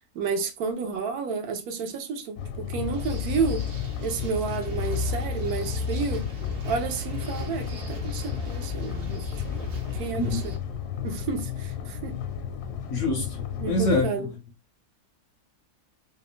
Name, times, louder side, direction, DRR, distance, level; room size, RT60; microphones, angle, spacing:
voice 1, 0.1-3.6 4.0-6.3 6.6-9.3 9.5-9.6 9.9-10.5 11.0-12.2 13.6-14.3, right 5 dB, 75° right, 1.1 m, -31 dB
sound 1, 2.4-14.1, left 8 dB, 85° left, 1.1 m, -34 dB
sound 2, 2.8-10.6, left 4 dB, 50° right, 0.8 m, -34 dB
voice 2, 12.9-13.4 13.7-14.1, left 2 dB, 65° left, 0.7 m, -24 dB
2.8 x 2.1 x 2.4 m
omnidirectional pair, 1.7 m